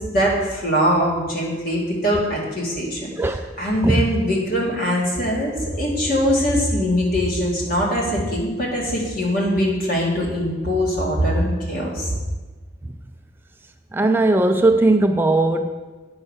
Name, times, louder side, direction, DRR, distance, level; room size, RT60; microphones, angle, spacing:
voice 1, 0.0-3.1 3.6-12.1, equal, 55° left, -3 dB, 2.4 m, -22 dB
voice 2, 13.9-15.7, right 2 dB, 10° right, 6 dB, 0.3 m, -18 dB
8.7 x 5.5 x 6.3 m, 1.3 s
head